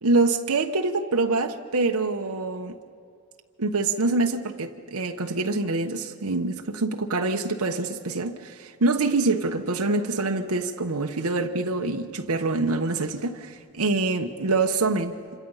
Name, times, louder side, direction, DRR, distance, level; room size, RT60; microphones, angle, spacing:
voice 1, 0.0-2.7 3.6-15.4, right 3 dB, 85° right, 1.2 m, -25 dB
27.5 x 26.0 x 5.7 m
head